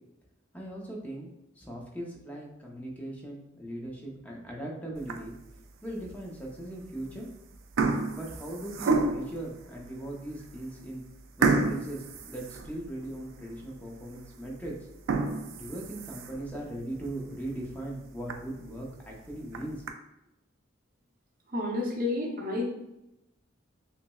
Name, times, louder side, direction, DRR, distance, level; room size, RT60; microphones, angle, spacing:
voice 1, 0.5-1.3 1.6-5.3 5.8-7.3 8.2-11.0 11.4-14.7 15.6-19.8, right 1 dB, 10° left, -2 dB, 0.7 m, -39 dB
sound 1, 5.0-5.5 6.1-6.2 7.0-7.3 7.5-9.4 10.0-10.1 10.5-10.6 11.4-13.2 13.6-13.7 14.2-14.3 14.9-16.5 17.0-17.1 17.5-17.6 17.9-18.0 18.3-18.4 19.3-19.9, right 3 dB, 75° right, 0.4 m, -29 dB
voice 2, 21.5-22.7, left 2 dB, 45° right, -2 dB, 0.7 m, -30 dB
5.7 x 2.1 x 2.3 m, 0.87 s
head